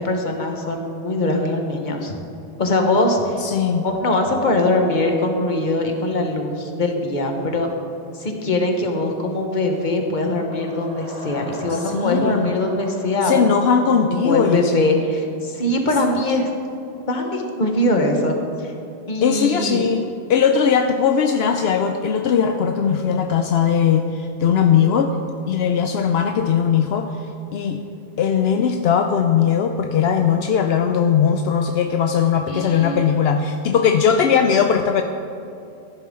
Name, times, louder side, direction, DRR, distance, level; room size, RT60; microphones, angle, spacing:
voice 1, 0.0-2.1 2.6-3.4 3.8-7.7 8.1-13.5 13.9-16.5 17.1-18.7 19.1-19.9 32.5-33.1, left 2 dB, 50° left, 3 dB, 1.3 m, -22 dB
voice 2, 3.4-3.9 11.7-12.5 13.2-15.0 16.3-16.4 19.2-25.1 25.5-27.8 28.2-35.0, left 7 dB, 80° left, 6 dB, 0.8 m, -19 dB
sound 1, 9.8-14.7, equal, 20° right, 2.1 m, -39 dB
14.5 x 11.0 x 3.7 m, 2.7 s
omnidirectional pair, 1.1 m